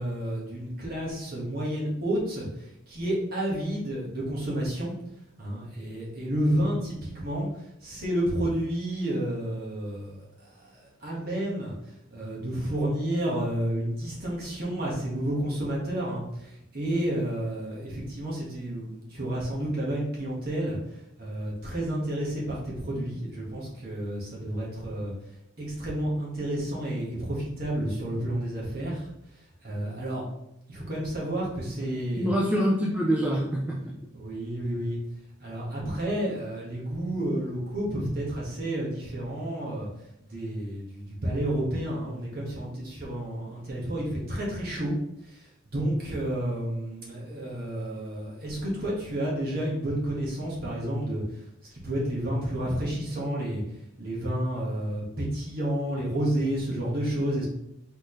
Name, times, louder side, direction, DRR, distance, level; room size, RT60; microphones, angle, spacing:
voice 1, 0.0-4.9 5.4-11.7 12.1-25.1 25.6-29.1 29.6-30.2 30.7-32.3 34.1-35.0 35.4-39.9 40.2-44.9 45.2-51.4 51.7-53.6 54.0-57.5, right 1 dB, 50° right, -4 dB, 1.5 m, -30 dB
voice 2, 32.2-33.9, equal, 5° right, -4 dB, 0.5 m, -25 dB
4.2 x 3.8 x 3.2 m, 0.82 s
head